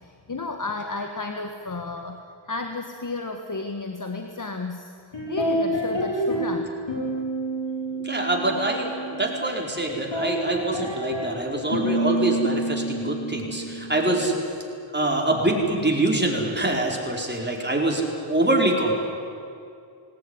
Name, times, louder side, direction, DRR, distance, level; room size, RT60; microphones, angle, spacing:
voice 1, 0.0-4.9 5.3-6.7, left 3 dB, 40° left, 5 dB, 1.6 m, -32 dB
sound 1, 5.1-6.6 6.9-9.6 9.9-14.2, right 1 dB, 65° left, 6.1 m, -28 dB
voice 2, 7.9-8.9 9.2-14.3 14.9-18.9, right 2 dB, 20° right, -1 dB, 4.8 m, -24 dB
20.0 x 18.5 x 9.9 m, 2.5 s
cardioid pair, 60°, 49 cm